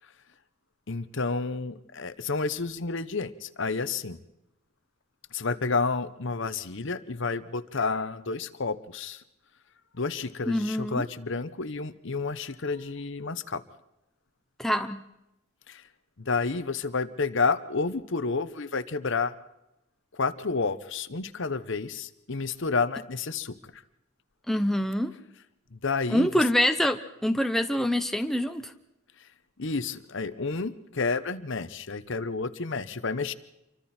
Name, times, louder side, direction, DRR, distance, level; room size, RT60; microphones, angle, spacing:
voice 1, 0.9-4.2 5.3-9.2 9.9-13.6 15.7-15.8 16.2-19.3 20.1-23.8 25.7-26.4 29.2-29.3 29.6-33.3, left 4 dB, 55° left, 13 dB, 1.0 m, -30 dB
voice 2, 10.5-11.1 14.6-15.0 24.5-25.1 26.1-28.7, equal, ahead, 7 dB, 0.8 m, -25 dB
28.0 x 24.5 x 4.4 m, 0.89 s
head